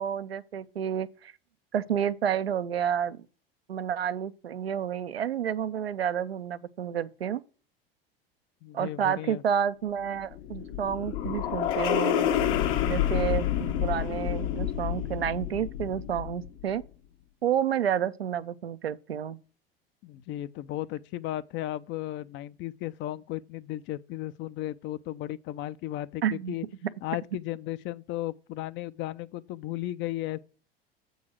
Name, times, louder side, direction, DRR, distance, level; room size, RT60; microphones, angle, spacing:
voice 1, 0.0-1.3 1.7-3.2 3.7-7.4 8.7-12.3 12.9-16.8 17.4-19.4 26.2-26.5, right 9 dB, 90° right, 0.5 m, -30 dB
voice 2, 8.6-9.4 20.0-26.7 27.0-30.4, left 15 dB, 40° left, 0.5 m, -35 dB
sound 1, 10.1-16.6, left 10 dB, 55° left, 1.0 m, -28 dB
7.6 x 3.9 x 6.0 m
hypercardioid pair, 80°, 30 cm